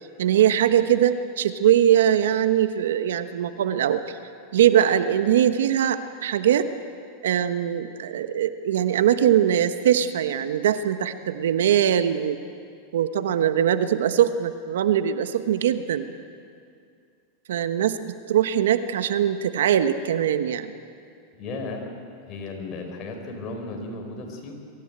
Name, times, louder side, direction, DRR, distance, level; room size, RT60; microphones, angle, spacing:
voice 1, 0.2-4.2 4.5-6.7 7.2-12.4 12.9-16.1 17.5-20.7, right 10 dB, 85° right, 10 dB, 1.1 m, -21 dB
voice 2, 21.3-21.8 22.2-24.5, left 3 dB, 40° left, 2 dB, 5.0 m, -35 dB
23.5 x 14.5 x 9.0 m, 2.3 s
hypercardioid pair, 120°, 0 cm